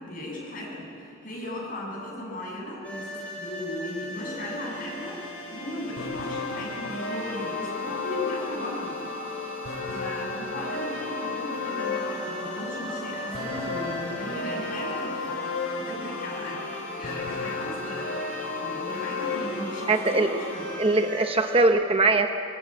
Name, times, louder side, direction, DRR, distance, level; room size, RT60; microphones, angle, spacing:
voice 1, 0.0-9.0 9.9-15.4 15.8-18.2 18.6-20.6, left 1 dB, 40° left, -2 dB, 7.2 m, -36 dB
sound 1, 2.8-21.6, left 2 dB, 5° left, 7.6 m, -39 dB
sound 2, 6.0-20.7, left 3 dB, 70° left, 3.1 m, -34 dB
voice 2, 19.9-20.3 20.8-22.3, right 3 dB, 25° right, 6 dB, 0.9 m, -21 dB
24.5 x 22.0 x 8.8 m, 2.7 s
head